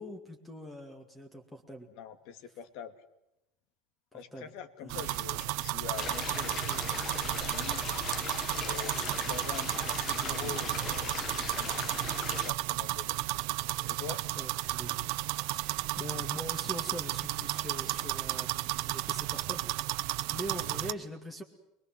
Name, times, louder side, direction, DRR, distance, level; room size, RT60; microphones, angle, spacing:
voice 1, 0.0-1.9 4.1-4.5 4.8-5.4 8.9-9.2 14.3-15.0 15.3-21.4, equal, 5° left, 3 dB, 2.2 m, -43 dB
voice 2, 2.0-2.9 4.1-6.8 7.1-7.9 8.6-13.2 13.9-14.3, left 8 dB, 60° left, 9 dB, 2.5 m, -45 dB
sound 1, 4.9-20.9, right 19 dB, 65° right, 1.1 m, -33 dB
sound 2, 6.0-12.5, left 7 dB, 30° left, 1.6 m, -39 dB
23.0 x 23.0 x 7.6 m, 0.87 s
cardioid pair, 160°, 0 cm